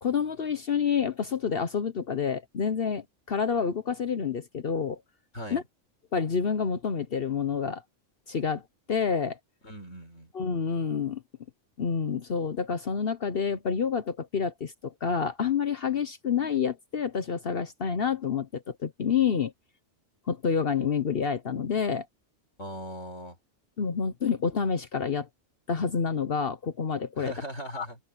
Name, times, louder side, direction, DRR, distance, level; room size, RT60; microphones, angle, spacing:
voice 1, 0.0-5.0 5.5-5.6 6.1-7.8 8.3-8.6 8.9-9.4 10.3-11.2 11.8-19.5 20.3-22.1 23.8-25.3 25.7-27.3 27.7-27.9, left 6 dB, 55° left, 1.1 m, -28 dB
voice 2, 9.6-10.3 22.6-23.4 27.2-28.0, equal, 70° left, 7.2 m, -39 dB
omnidirectional pair, 1.3 m